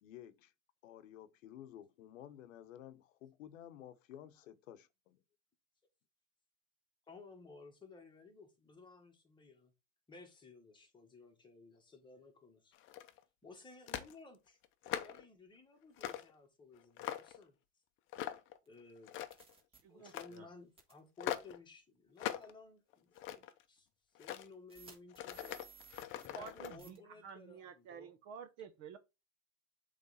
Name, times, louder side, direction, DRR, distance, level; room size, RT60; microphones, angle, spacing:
voice 1, 0.0-0.5 0.8-5.2, left 11 dB, 85° left, 0.8 m, -53 dB
voice 2, 7.1-9.7 10.1-12.7 13.4-14.6 14.8-17.6 18.7-19.1 19.9-23.9 24.2-25.5 26.2-28.1, left 4 dB, 10° left, 1.4 m, -57 dB
sound 1, 12.7-13.2 13.9-14.1 14.6-15.2 16.0-16.3 16.7-17.4 18.1-18.6 19.0-19.5 20.0-20.4 21.2-21.6 22.2-22.5 22.9-23.6 24.1-24.5 25.1-26.8, left 12 dB, 30° left, 0.6 m, -42 dB
sound 2, 18.7-18.8 19.3-19.8 20.8-21.0 21.3-21.4 22.3-22.4 23.1-23.2 24.7-26.5 26.8-27.0, right 5 dB, 15° right, 1.5 m, -58 dB
voice 3, 19.8-20.5 26.3-29.0, right 7 dB, 40° right, 0.8 m, -51 dB
7.9 x 3.3 x 4.1 m
supercardioid pair, 140°, 38 cm